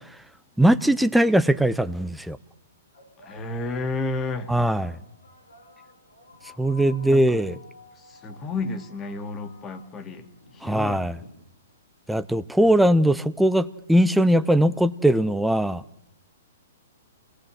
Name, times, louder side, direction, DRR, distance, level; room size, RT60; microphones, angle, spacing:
voice 1, 0.6-2.4 4.5-5.0 6.6-7.5 10.6-11.1 12.1-15.8, right 1 dB, 5° right, 12 dB, 1.0 m, -20 dB
sound 1, 2.1-2.2 2.9-11.8, left 2 dB, 80° left, 7.2 m, -50 dB
voice 2, 3.2-4.5 7.1-7.5 8.0-11.0, left 3 dB, 20° left, 8 dB, 2.5 m, -32 dB
28.5 x 19.0 x 7.7 m, 0.76 s
hypercardioid pair, 120°, 0 cm